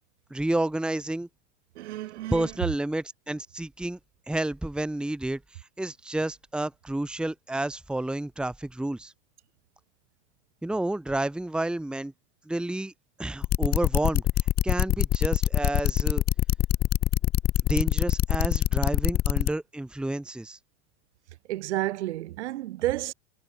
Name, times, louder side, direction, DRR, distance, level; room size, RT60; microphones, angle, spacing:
voice 1, 0.3-1.3 2.3-4.0 4.3-5.4 5.8-9.1 10.6-12.1 12.5-12.9 13.2-14.2 14.6-16.2 17.7-20.6, right 1 dB, 5° right, 1.5 m, -30 dB
voice 2, 1.8-2.5 21.5-23.1, right 15 dB, 85° right, 6.0 m, -31 dB
sound 1, 13.4-19.5, left 13 dB, 30° left, 0.9 m, -23 dB
supercardioid pair, 140°, 33 cm